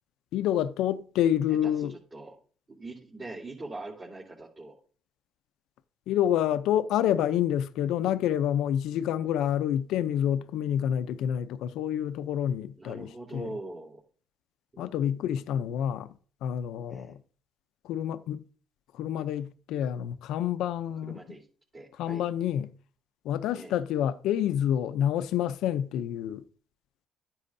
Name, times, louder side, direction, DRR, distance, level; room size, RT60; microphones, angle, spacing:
voice 1, 0.3-1.9 6.1-13.5 14.8-17.2 17.8-18.4 18.9-21.2 22.0-22.7 23.2-26.4, left 10 dB, 85° left, 0.5 m, -28 dB
voice 2, 1.5-2.3 2.7-4.7 12.8-14.0 14.7-15.8 16.9-17.1 21.0-21.4 21.7-22.2 23.5-23.8, right 2 dB, 30° right, 3.4 m, -43 dB
13.0 x 9.8 x 2.7 m
cardioid pair, 95°, 0 cm